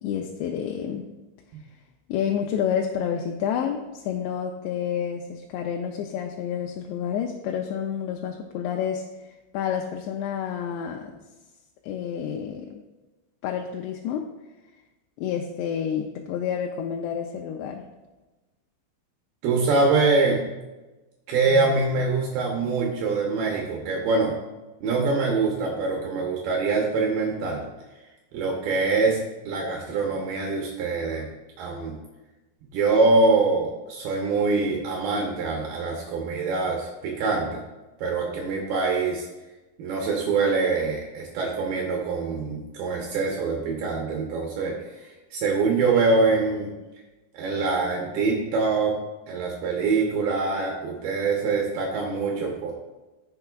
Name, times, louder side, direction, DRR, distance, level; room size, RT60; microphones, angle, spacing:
voice 1, 0.0-1.1 2.1-9.0 9.5-11.1 11.8-12.8 13.4-14.3 15.2-17.8, left 8 dB, 90° left, 2 dB, 2.9 m, -29 dB
voice 2, 19.4-20.4 21.3-24.3 24.8-27.6 28.3-32.0 32.7-37.6 38.0-39.3 39.8-46.7 47.3-49.0 49.3-52.7, right 3 dB, 70° right, 0 dB, 2.6 m, -24 dB
15.0 x 6.8 x 2.3 m, 1.1 s
omnidirectional pair, 5.0 m